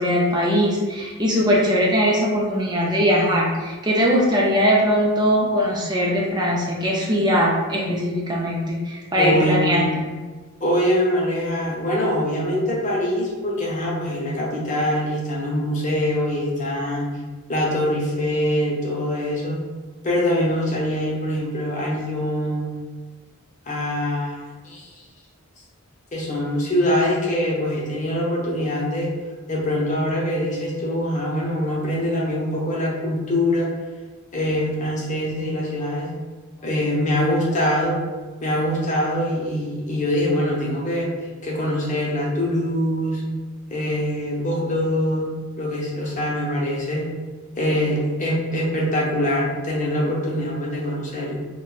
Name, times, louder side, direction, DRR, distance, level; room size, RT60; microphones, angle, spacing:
voice 1, 0.0-9.9, equal, 20° right, -3 dB, 0.5 m, -20 dB
voice 2, 9.2-9.9 10.6-17.1 17.5-19.6 20.0-22.7 23.7-25.0 26.1-29.1 29.5-33.7 34.3-36.1 36.6-38.0 38.4-41.1 41.4-43.2 43.7-47.1 47.6-51.3, equal, 35° left, -4 dB, 0.7 m, -23 dB
2.5 x 2.2 x 3.8 m, 1.3 s
head